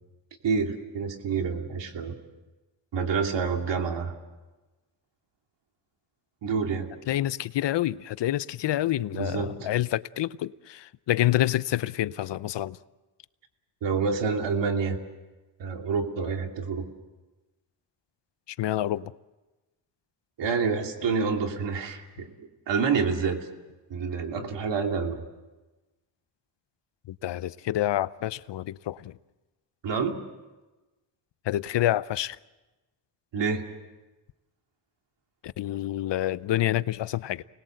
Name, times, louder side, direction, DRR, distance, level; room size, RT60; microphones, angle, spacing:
voice 1, 0.4-2.2 2.9-4.1 6.4-6.9 9.1-9.5 13.8-15.0 15.6-16.9 20.4-23.5 23.9-25.2 29.8-30.2 33.3-33.6, right 5 dB, 85° right, 2.9 m, -28 dB
voice 2, 7.1-12.8 18.6-19.1 27.1-29.2 31.5-32.4 35.6-37.4, left 13 dB, 80° left, 0.8 m, -27 dB
29.0 x 20.0 x 7.8 m
cardioid pair, 85°, 42 cm